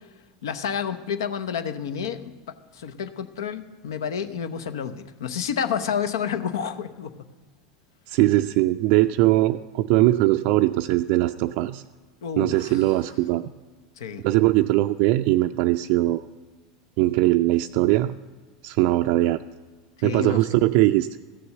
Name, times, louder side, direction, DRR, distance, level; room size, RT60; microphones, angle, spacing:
voice 1, 0.4-7.3 12.2-12.8 14.0-14.2 20.0-20.4, left 7 dB, 70° left, 11 dB, 0.8 m, -30 dB
voice 2, 8.1-11.8 12.4-13.5 14.2-16.3 17.0-18.1 18.6-19.4 20.0-21.1, right 16 dB, 55° right, 6 dB, 0.3 m, -20 dB
14.5 x 6.9 x 7.7 m, 1.4 s
hypercardioid pair, 85°, 2 cm